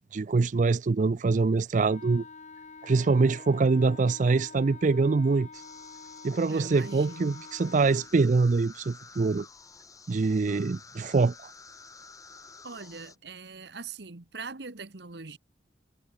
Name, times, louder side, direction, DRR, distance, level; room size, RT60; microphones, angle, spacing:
voice 1, 0.0-2.2 2.8-5.5 6.2-9.5 10.1-11.5, right 4 dB, 45° right, 0.4 m, -24 dB
Wind instrument woodwind instrument, 1.8-8.1, left 4 dB, 40° left, 1.3 m, -47 dB
sound 1, 5.5-13.2, left 4 dB, 20° left, 3.3 m, -51 dB
voice 2, 6.5-7.4 12.6-15.4, right 4 dB, 70° right, 1.3 m, -41 dB
head